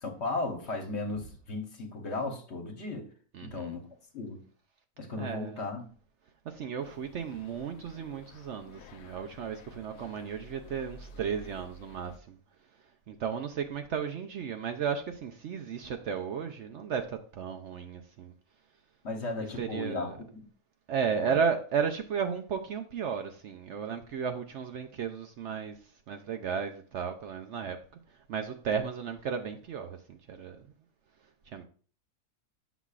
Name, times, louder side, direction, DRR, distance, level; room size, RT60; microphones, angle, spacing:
voice 1, 0.0-3.1 3.4-3.9 4.1-4.4 5.0-5.9 19.0-20.5 21.2-21.4, left 3 dB, 50° left, 1.2 m, -35 dB
voice 2, 3.3-3.7 5.1-5.6 6.5-12.4 13.1-18.3 19.6-20.2 20.9-25.8 26.1-27.8 28.3-30.6 31.5-31.6, right 7 dB, 65° right, 0.7 m, -34 dB
pedestrian area, 6.8-12.2, left 2 dB, 70° left, 0.6 m, -51 dB
8.1 x 5.9 x 2.4 m
omnidirectional pair, 1.6 m